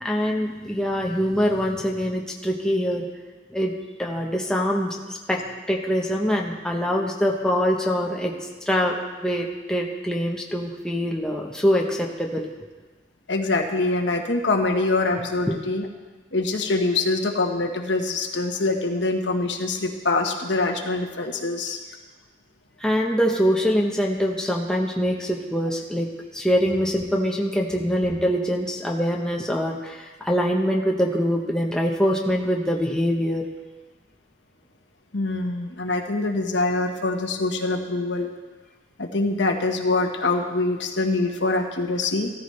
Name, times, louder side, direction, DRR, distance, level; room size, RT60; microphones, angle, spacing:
voice 1, 0.0-3.1 3.5-5.4 5.7-12.5 15.5-15.6 22.8-33.4, equal, 5° left, -1 dB, 1.0 m, -24 dB
voice 2, 13.3-15.9 16.3-21.8 35.1-38.3 39.0-42.3, left 2 dB, 80° left, 3 dB, 1.2 m, -24 dB
15.0 x 13.5 x 3.3 m, 1.3 s
head